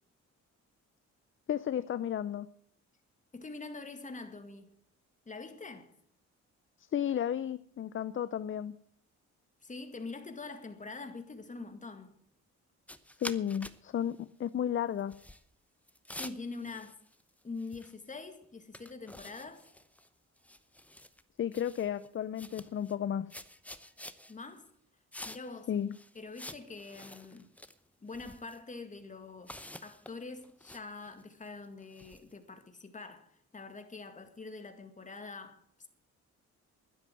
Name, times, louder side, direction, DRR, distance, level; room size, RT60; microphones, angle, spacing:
voice 1, 1.5-2.5 6.9-8.8 13.2-15.1 21.4-23.3 25.7-25.9, left 9 dB, 40° left, 0.6 m, -33 dB
voice 2, 3.3-4.7 5.3-6.0 9.6-12.2 16.1-17.0 17.4-19.6 24.3-24.7 25.2-25.7 26.1-27.5 28.0-35.9, left 3 dB, 25° left, 2.2 m, -44 dB
sound 1, 12.9-13.8 14.1-14.2 15.0-15.4 15.9-17.3 17.6-18.1 18.4-18.5 18.7-20.1 20.4-21.2 21.5-22.1 22.4-22.9 23.3-24.3 25.1-25.6 25.9-27.7 28.1-28.6 29.4-32.3, left 1 dB, 5° left, 0.8 m, -48 dB
12.0 x 10.5 x 7.6 m
cardioid pair, 90°, 30 cm